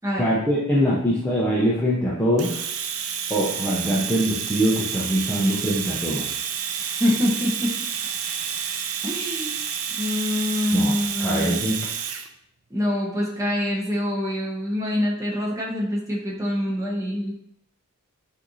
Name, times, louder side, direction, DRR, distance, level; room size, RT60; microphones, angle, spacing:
voice 1, 0.2-2.6 3.3-6.3 10.7-11.8, equal, 10° left, -7 dB, 0.6 m, -23 dB
Domestic sounds home sounds, 2.4-12.3, right 8 dB, 70° right, 0.5 m, -30 dB
voice 2, 6.8-7.8 9.0-9.7 9.9-11.6 12.7-17.3, left 1 dB, 15° right, -3 dB, 1.0 m, -25 dB
6.1 x 2.7 x 3.1 m, 0.71 s
head